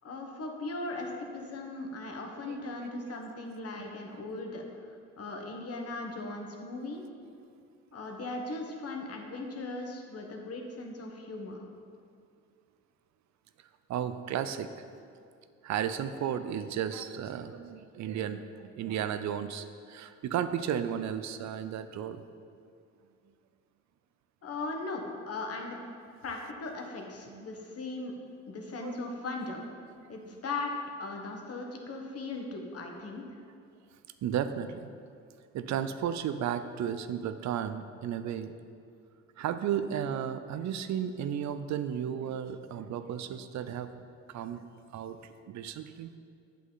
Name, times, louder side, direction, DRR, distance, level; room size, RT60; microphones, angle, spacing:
voice 1, 0.0-7.0 7.9-11.7 24.4-25.8 26.2-28.1 28.5-29.6 30.1-30.7 31.0-33.2, left 2 dB, 50° left, 2 dB, 1.3 m, -38 dB
voice 2, 13.9-14.7 15.6-22.2 27.3-27.4 28.8-29.0 30.0-30.2 34.2-34.9 35.5-38.5 39.4-44.6 44.9-46.1, right 9 dB, 65° right, 11 dB, 0.5 m, -34 dB
8.2 x 7.7 x 4.0 m, 2.3 s
cardioid pair, 90°, 30 cm